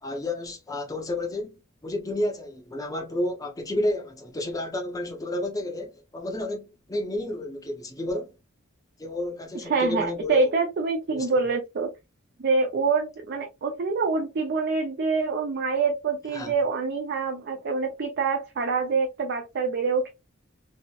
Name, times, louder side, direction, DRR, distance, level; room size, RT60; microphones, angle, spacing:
voice 1, 0.0-8.3 9.0-10.5 11.1-11.3 16.3-16.5, left 1 dB, 15° left, 0.5 m, -31 dB
voice 2, 9.7-11.9 12.4-20.1, right 4 dB, 50° right, 0.4 m, -26 dB
2.7 x 2.0 x 2.3 m
head